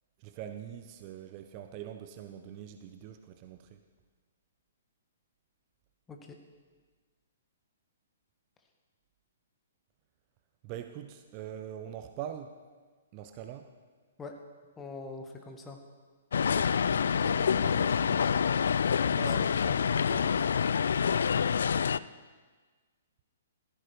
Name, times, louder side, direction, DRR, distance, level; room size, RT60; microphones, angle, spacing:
voice 1, 0.2-3.8 10.6-12.6 13.1-13.7 16.4-16.7 17.2-18.4 19.2-19.5, right 10 dB, 35° right, 7 dB, 0.9 m, -43 dB
voice 2, 14.8-15.8 19.1-19.8 20.0-20.3, left 3 dB, 15° left, 3 dB, 1.8 m, -43 dB
sound 1, 16.3-22.0, left 7 dB, 60° left, 0.4 m, -27 dB
15.0 x 14.5 x 4.8 m, 1.4 s
figure-of-eight pair, 120°, 0 cm